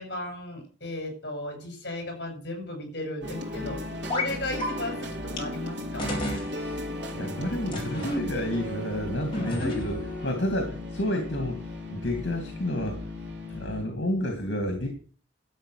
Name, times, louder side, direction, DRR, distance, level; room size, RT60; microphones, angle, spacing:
voice 1, 0.0-3.8 4.1-6.2 9.6-10.3, left 1 dB, 60° left, 3 dB, 6.7 m, -35 dB
sound 1, 3.2-13.9, left 1 dB, 70° right, 4.0 m, -36 dB
sound 2, 4.1-4.3 4.6-4.7 5.4-5.5 6.0-6.5 7.7-8.2 9.3-10.0, left 1 dB, 30° left, 4.0 m, -31 dB
voice 2, 6.5-6.8 7.1-10.0 10.2-13.0 13.5-14.9, left 1 dB, 80° left, 5 dB, 2.5 m, -30 dB
12.5 x 7.9 x 6.6 m, 0.41 s
head